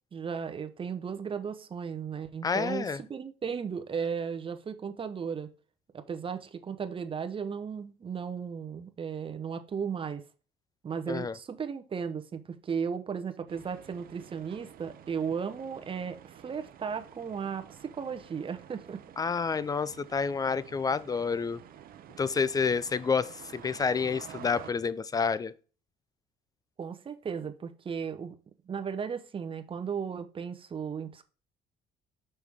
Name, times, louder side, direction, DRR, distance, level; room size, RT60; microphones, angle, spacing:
voice 1, 0.1-5.5 5.9-10.2 10.8-19.0 26.8-28.4 28.7-31.2, right 6 dB, 30° right, 0.9 m, -35 dB
voice 2, 2.4-3.0 11.1-11.3 19.2-21.6 22.2-25.5, left 5 dB, 20° left, 0.4 m, -29 dB
sound 1, 13.5-24.7, right 10 dB, 60° right, 0.7 m, -50 dB
6.2 x 5.6 x 3.5 m
cardioid pair, 110°, 17 cm